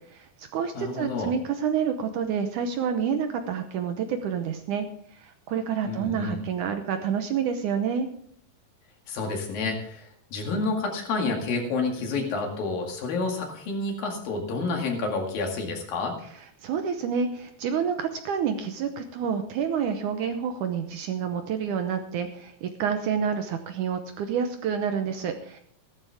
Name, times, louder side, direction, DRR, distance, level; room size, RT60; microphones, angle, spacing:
voice 1, 0.1-4.9 5.1-8.1 16.6-25.6, right 7 dB, 75° right, 7 dB, 2.0 m, -28 dB
voice 2, 0.8-1.3 5.8-6.4 9.1-16.2, left 3 dB, 70° left, 2 dB, 3.8 m, -29 dB
15.5 x 12.5 x 3.5 m, 0.62 s
omnidirectional pair, 4.3 m